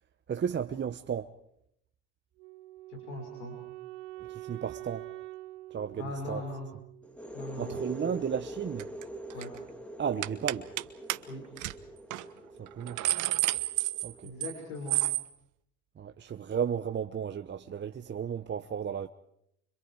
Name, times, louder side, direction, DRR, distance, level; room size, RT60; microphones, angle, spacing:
voice 1, 0.3-1.3 4.3-5.1 5.7-6.4 7.6-8.9 10.0-10.7 12.6-13.0 14.0-14.3 16.0-19.1, right 8 dB, 30° right, 1.0 m, -34 dB
Wind instrument woodwind instrument, 2.4-7.4, right 17 dB, 85° right, 3.8 m, -45 dB
voice 2, 2.9-3.5 6.0-6.7 7.3-7.8 9.3-9.5 11.3-11.4 14.2-15.0, left 2 dB, 85° left, 6.0 m, -39 dB
sound 1, 7.0-14.6, right 1 dB, 5° left, 2.5 m, -44 dB
sound 2, 8.8-9.0 9.3-9.6 10.2-10.8 11.1-11.2 11.6-11.7 12.1-12.2 12.7-14.6 14.9-15.2, right 16 dB, 60° right, 1.3 m, -30 dB
30.0 x 26.0 x 4.9 m
hypercardioid pair, 75°, 34 cm